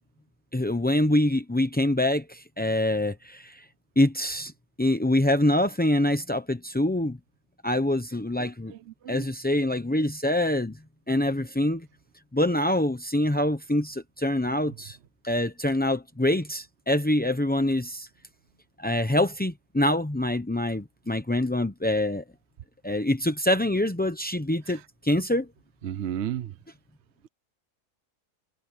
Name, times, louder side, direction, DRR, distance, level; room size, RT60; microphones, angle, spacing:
voice 1, 0.5-3.6 4.0-4.5 4.8-7.2 7.6-8.7 9.1-10.8 11.1-11.9 12.3-15.0 15.2-18.1 18.8-22.2 22.8-25.5, left 1 dB, 15° left, 0.4 m, -25 dB
voice 2, 25.8-26.5, right 10 dB, 55° right, 0.8 m, -32 dB
omnidirectional pair, 1.7 m